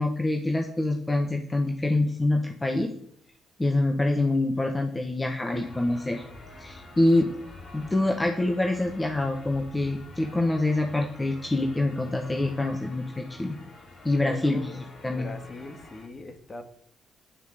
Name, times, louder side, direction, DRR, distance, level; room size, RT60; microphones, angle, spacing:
voice 1, 0.0-2.9 3.6-6.2 6.6-7.3 7.7-13.6 14.0-14.7 15.0-15.3, left 2 dB, 15° left, 3 dB, 1.4 m, -25 dB
sound 1, 5.5-16.1, left 2 dB, 55° left, 3.3 m, -47 dB
voice 2, 14.2-16.6, left 2 dB, 30° left, 7 dB, 2.0 m, -41 dB
10.0 x 9.3 x 6.6 m, 0.65 s
cardioid pair, 90°, 0 cm